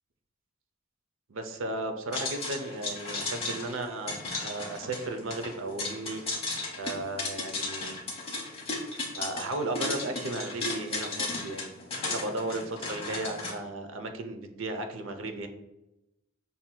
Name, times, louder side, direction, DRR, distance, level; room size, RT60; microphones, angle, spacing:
voice 1, 1.3-6.2 6.8-7.9 9.1-11.7 12.1-15.5, right 2 dB, 80° right, 6 dB, 0.6 m, -35 dB
sound 1, 2.1-13.5, left 3 dB, 30° left, 0.9 m, -35 dB
5.7 x 2.7 x 2.2 m, 0.91 s
head